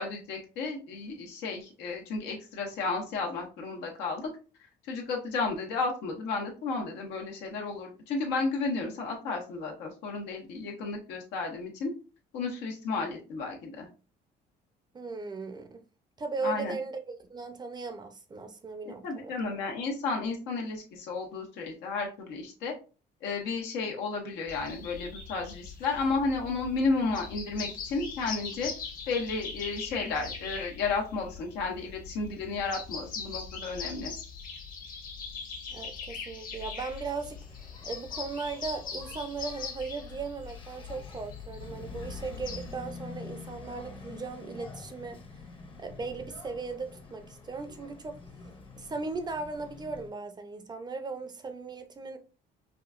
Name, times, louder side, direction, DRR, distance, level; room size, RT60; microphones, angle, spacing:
voice 1, 0.0-4.3 4.9-11.9 12.3-13.9 16.4-16.8 19.0-22.7 23.2-28.7 29.1-34.1, left 4 dB, 85° left, 1.2 m, -32 dB
voice 2, 14.9-15.8 16.2-19.6 35.7-37.4 37.8-45.2 45.8-48.2 48.8-52.2, right 4 dB, 25° right, 0.5 m, -37 dB
sound 1, 24.5-42.7, left 5 dB, 55° left, 1.3 m, -41 dB
Engine, 37.1-50.1, left 3 dB, 30° left, 0.8 m, -47 dB
4.9 x 2.3 x 2.4 m
cardioid pair, 110°, 17 cm